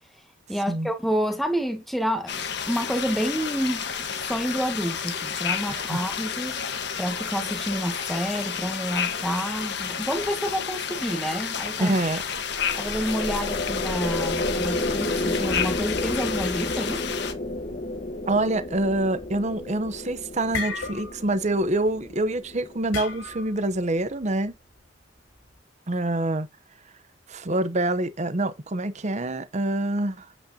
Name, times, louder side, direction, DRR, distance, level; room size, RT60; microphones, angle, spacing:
voice 1, 0.5-12.0 12.8-17.1, equal, ahead, 1.6 m, -29 dB
sound 1, 2.3-17.3, left 7 dB, 60° left, 1.4 m, -31 dB
voice 2, 11.8-12.2 18.3-24.5 25.9-26.5 27.3-30.3, right 1 dB, 35° right, 0.8 m, -26 dB
sound 2, 12.2-23.6, left 1 dB, 35° left, 1.1 m, -32 dB
Water Bottle Boing, 19.9-20.0 20.3-21.4 21.6-21.9 22.9-23.6, left 4 dB, 80° left, 4.3 m, -33 dB
8.6 x 8.3 x 2.8 m
head